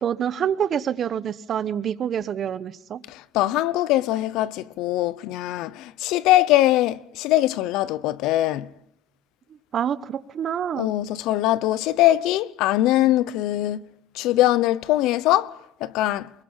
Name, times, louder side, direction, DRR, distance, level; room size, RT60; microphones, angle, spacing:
voice 1, 0.0-3.0 9.7-10.9, right 8 dB, 40° right, 1.1 m, -26 dB
voice 2, 3.1-8.7 10.8-13.9 14.1-16.3, left 15 dB, 70° left, 0.9 m, -22 dB
24.0 x 22.0 x 5.7 m
cardioid pair, 135°, 0 cm